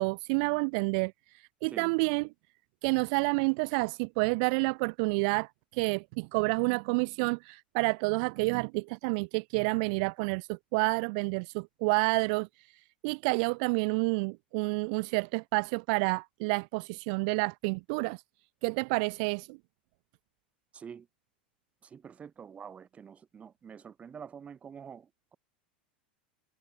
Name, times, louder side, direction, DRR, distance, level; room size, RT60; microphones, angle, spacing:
voice 1, 0.0-2.3 2.8-18.2 18.6-19.6, right 33 dB, 50° right, 0.4 m, -29 dB
voice 2, 20.7-21.1 21.8-25.4, right 7 dB, 25° right, 3.4 m, -47 dB
figure-of-eight pair, 85°, 5 cm